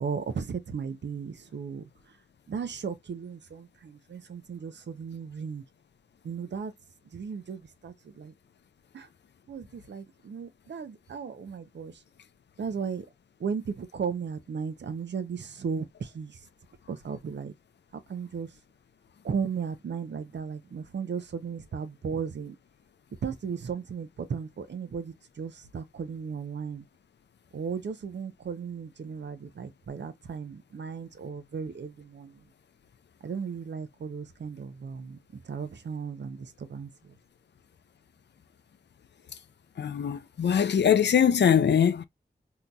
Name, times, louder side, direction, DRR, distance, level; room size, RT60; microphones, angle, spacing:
voice 1, 0.0-1.9 2.5-5.6 6.2-6.7 7.1-8.3 8.9-9.1 9.5-11.9 12.6-13.1 13.4-16.4 16.9-17.5 17.9-18.5 19.2-22.6 23.2-26.8 27.5-32.4 33.2-35.2 35.4-37.1, right 6 dB, 85° right, 0.6 m, -35 dB
voice 2, 39.8-42.0, left 8 dB, 75° left, 0.4 m, -22 dB
3.9 x 2.8 x 2.3 m
cardioid pair, 45°, 18 cm